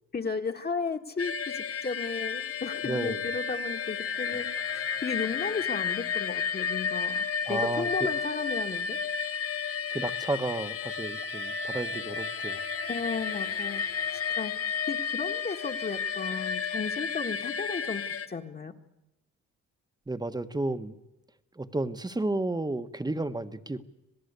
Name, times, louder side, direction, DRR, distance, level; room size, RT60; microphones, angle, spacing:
voice 1, 0.1-4.5 4.7-9.0 12.9-13.8 14.4-14.5 14.9-18.0 18.3-18.7, left 5 dB, 35° left, 4 dB, 2.0 m, -34 dB
sound 1, 1.2-18.3, left 6 dB, 50° left, 1.4 m, -32 dB
voice 2, 2.8-3.2 4.3-4.4 7.5-7.9 9.9-12.6 20.1-21.0 21.6-23.8, right 2 dB, 15° right, 10 dB, 1.4 m, -32 dB
27.0 x 18.0 x 8.3 m, 0.94 s
cardioid pair, 90°, 30 cm